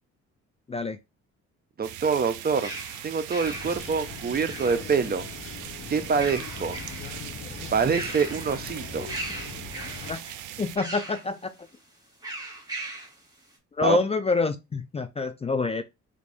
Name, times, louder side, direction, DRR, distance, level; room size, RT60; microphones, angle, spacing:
voice 1, 1.8-2.7 3.0-5.2 5.9-6.8 7.7-9.1 13.8-14.0, right 5 dB, 30° right, 0.5 m, -25 dB
sound 1, 1.8-10.8, right 12 dB, 80° right, 0.5 m, -40 dB
sound 2, 2.6-5.1 6.0-7.3 7.6-8.7 9.1-10.2 10.8-11.3 12.2-13.2, right 2 dB, 15° right, 1.8 m, -38 dB
sound 3, 3.4-10.2, left 6 dB, 45° left, 0.7 m, -41 dB
voice 2, 10.1-11.5 13.7-15.8, left 4 dB, 20° left, 0.4 m, -27 dB
3.5 x 2.6 x 3.3 m
cardioid pair, 90°, 30 cm